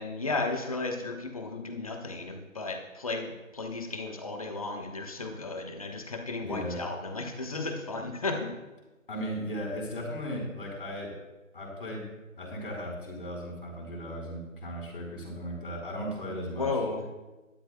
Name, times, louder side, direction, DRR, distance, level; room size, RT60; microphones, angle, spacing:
voice 1, 0.0-8.5 16.5-17.1, left 3 dB, 25° left, 4 dB, 1.2 m, -34 dB
voice 2, 6.4-6.8 9.1-11.1 11.5-12.1 12.4-16.7, equal, 40° left, -2 dB, 4.6 m, -36 dB
18.5 x 12.5 x 2.3 m, 1.1 s
figure-of-eight pair, 155°, 40 cm